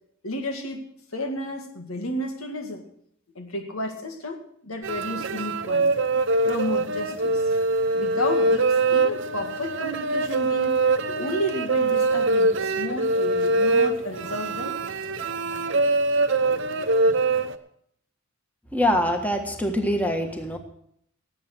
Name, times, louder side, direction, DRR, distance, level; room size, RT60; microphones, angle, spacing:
voice 1, 0.2-0.9 1.1-2.8 3.4-5.9 6.4-7.5 7.9-10.8 11.1-14.8, left 1 dB, 90° left, 5 dB, 2.1 m, -32 dB
sound 1, 4.8-17.6, right 2 dB, 60° right, 0.9 m, -23 dB
voice 2, 18.7-20.6, equal, 5° left, 4 dB, 1.6 m, -24 dB
18.0 x 8.0 x 6.1 m, 0.70 s
head